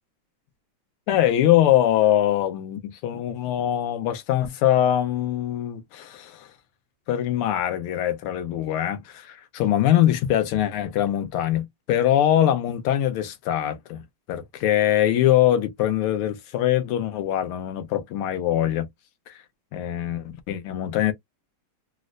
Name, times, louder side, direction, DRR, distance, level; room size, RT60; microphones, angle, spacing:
voice 1, 1.1-6.5 7.1-14.0 14.3-18.9 19.3-19.4 19.7-21.1, left 11 dB, 85° left, 1.6 m, -23 dB
4.1 x 2.0 x 2.4 m
omnidirectional pair, 2.3 m